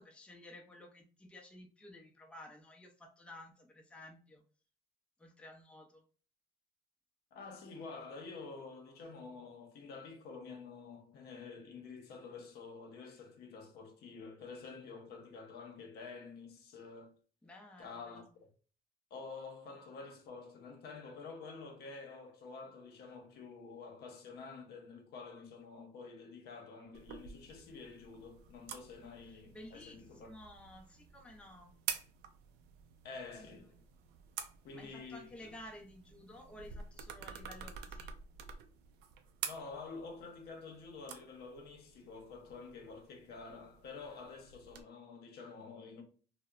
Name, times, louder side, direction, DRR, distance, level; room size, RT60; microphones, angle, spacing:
voice 1, 0.0-4.4 5.2-6.0 17.4-18.3 29.5-31.7 33.4-33.6 34.7-38.2, left 1 dB, 5° left, 0.5 m, -53 dB
voice 2, 7.3-17.1 17.8-18.5 19.1-30.3 33.0-33.8 34.6-35.5 39.4-46.0, left 4 dB, 70° left, 0.7 m, -49 dB
sound 1, 26.9-44.8, right 7 dB, 85° right, 0.4 m, -49 dB
2.8 x 2.0 x 2.3 m
cardioid pair, 110°, 17 cm